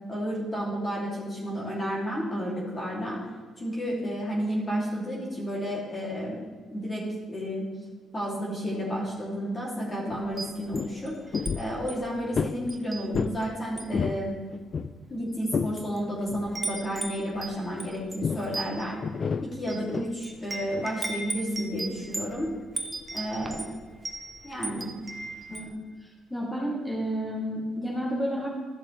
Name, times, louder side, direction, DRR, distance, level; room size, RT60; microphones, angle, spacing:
voice 1, 0.1-3.2 3.6-6.5 6.7-7.0 7.3-7.7 8.1-14.4 15.1-19.0 19.4-22.5 23.1-23.7 24.4-24.9, equal, 30° left, -5 dB, 2.8 m, -31 dB
sound 1, 10.1-10.2 10.5-10.9 11.3-11.7 12.3-12.6 13.1-13.4 13.8-14.3 14.5-15.8 16.3-16.5 18.2-18.5 19.0-20.1 20.7-20.9, left 5 dB, 45° left, 0.4 m, -30 dB
Wind chime, 10.2-11.5 11.9-12.1 12.7-13.4 13.7-14.0 14.8-14.9 15.5-16.0 16.2-25.7, right 2 dB, 20° right, 0.9 m, -37 dB
voice 2, 26.3-28.5, equal, 5° left, -5 dB, 2.9 m, -30 dB
13.0 x 6.5 x 3.3 m, 1.5 s
cardioid pair, 90°, 0 cm